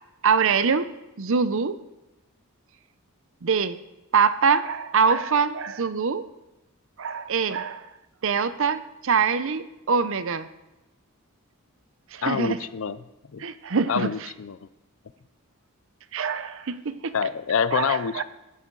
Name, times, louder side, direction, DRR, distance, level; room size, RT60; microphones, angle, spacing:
voice 1, 0.2-1.8 3.4-3.8 4.1-6.3 7.0-7.9 8.2-10.5 12.1-12.6 13.4-14.1 16.1-17.1 17.7-18.2, right 5 dB, 60° right, 13 dB, 0.7 m, -24 dB
voice 2, 12.2-13.0 13.3-13.4 13.9-14.7 17.1-18.2, left 6 dB, 60° left, 15 dB, 0.5 m, -26 dB
15.0 x 10.0 x 3.9 m, 1.0 s
head